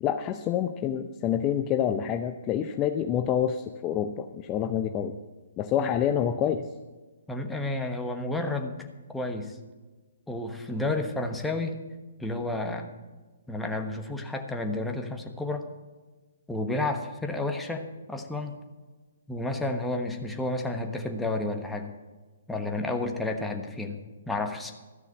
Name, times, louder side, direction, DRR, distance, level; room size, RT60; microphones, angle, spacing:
voice 1, 0.0-5.2 5.6-6.7, left 9 dB, 25° left, 7 dB, 0.6 m, -27 dB
voice 2, 7.3-9.6 10.3-11.8 12.2-12.9 13.5-15.7 16.5-18.6 19.3-21.9 22.5-24.7, left 2 dB, 5° left, 3 dB, 1.2 m, -31 dB
13.5 x 6.6 x 8.3 m, 1.3 s
figure-of-eight pair, 130°, 0 cm